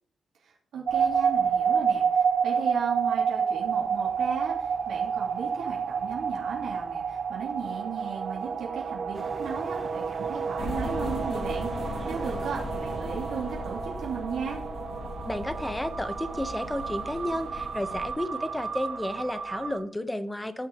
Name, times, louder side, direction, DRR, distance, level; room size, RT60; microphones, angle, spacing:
voice 1, 0.4-14.6, right 6 dB, 85° right, -5 dB, 3.3 m, -36 dB
sound 1, 0.9-19.8, right 6 dB, 60° right, 1.5 m, -30 dB
sound 2, 9.1-14.0, right 3 dB, 30° right, 1.0 m, -45 dB
sound 3, 10.6-18.1, left 2 dB, 75° left, 2.4 m, -38 dB
voice 2, 15.2-20.7, left 1 dB, 10° left, 10 dB, 1.1 m, -32 dB
17.5 x 6.7 x 3.1 m, 0.65 s
cardioid pair, 75°, 0 cm